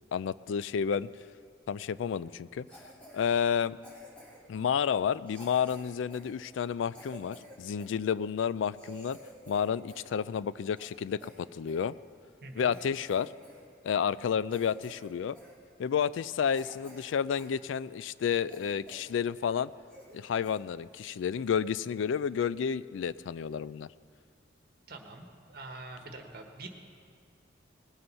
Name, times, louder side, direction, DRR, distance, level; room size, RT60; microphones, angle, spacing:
voice 1, 0.1-1.1 1.7-2.7 3.1-3.8 4.5-9.2 9.5-11.9 12.6-13.3 13.8-15.4 15.8-19.7 20.1-23.9, left 7 dB, 90° left, 18 dB, 0.3 m, -30 dB
Cough, 2.7-3.2 3.8-4.5 5.3-8.0 8.4-8.5 8.7-10.1 10.4-11.9 12.3-12.4 12.7-13.6 13.9-14.1 14.5-15.1 15.3-15.6 16.1-16.2 16.5-17.6 18.0-18.1 18.5-19.2 19.5-19.6 19.9-20.2 20.4-20.6 21.1-21.3, equal, 5° left, 2.4 m, -51 dB
voice 2, 12.4-12.7 24.9-26.7, right 2 dB, 55° right, 3 dB, 1.4 m, -45 dB
19.5 x 7.9 x 5.5 m, 2.3 s
head